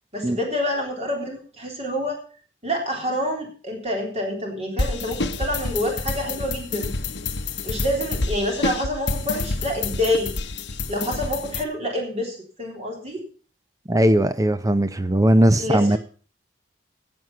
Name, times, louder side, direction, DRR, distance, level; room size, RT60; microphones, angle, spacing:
voice 1, 0.1-2.2 2.6-6.9 7.6-10.3 10.9-13.2 15.6-16.0, left 1 dB, 40° right, 3.7 m, -27 dB
sound 1, 4.8-11.6, left 3 dB, 85° left, 1.0 m, -28 dB
voice 2, 13.9-16.0, right 1 dB, 20° right, 0.7 m, -18 dB
16.0 x 8.0 x 5.6 m
head